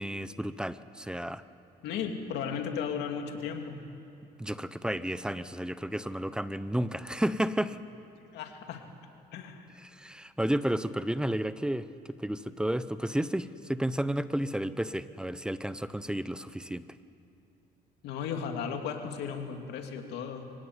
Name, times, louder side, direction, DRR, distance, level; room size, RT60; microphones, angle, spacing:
voice 1, 0.0-1.4 4.4-7.8 9.8-16.8, right 1 dB, 5° right, 14 dB, 0.7 m, -32 dB
voice 2, 1.8-3.8 8.3-8.8 9.3-9.7 18.0-20.4, left 7 dB, 80° left, 4 dB, 2.6 m, -35 dB
24.5 x 16.5 x 9.6 m, 2.6 s
cardioid pair, 110°, 17 cm